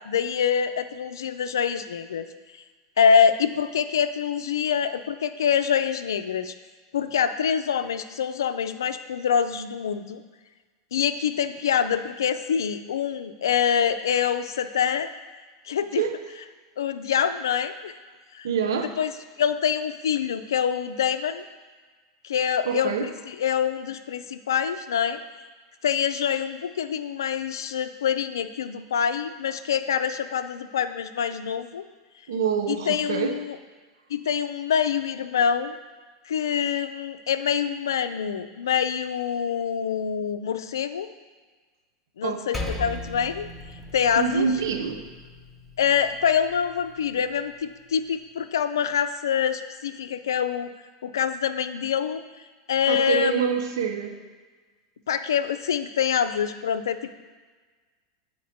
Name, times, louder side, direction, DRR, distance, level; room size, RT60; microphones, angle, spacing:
voice 1, 0.0-2.3 3.0-6.5 6.9-10.2 10.9-15.1 15.6-16.0 16.8-17.9 18.3-18.5 18.8-19.1 19.4-21.4 22.2-25.2 25.8-31.9 32.7-33.6 34.1-35.8 36.3-41.1 42.2-44.5 45.8-50.7 51.0-52.2 52.7-53.4 55.1-57.1, left 7 dB, 85° left, 10 dB, 0.4 m, -25 dB
voice 2, 18.4-19.0 22.7-23.1 32.3-33.4 42.2-42.4 44.2-45.0 52.9-54.2, right 7 dB, 75° right, 5 dB, 0.7 m, -26 dB
Percussion, 42.5-47.3, left 1 dB, 5° left, 1.0 m, -38 dB
8.2 x 4.6 x 4.2 m, 1.4 s
hypercardioid pair, 100°, 2 cm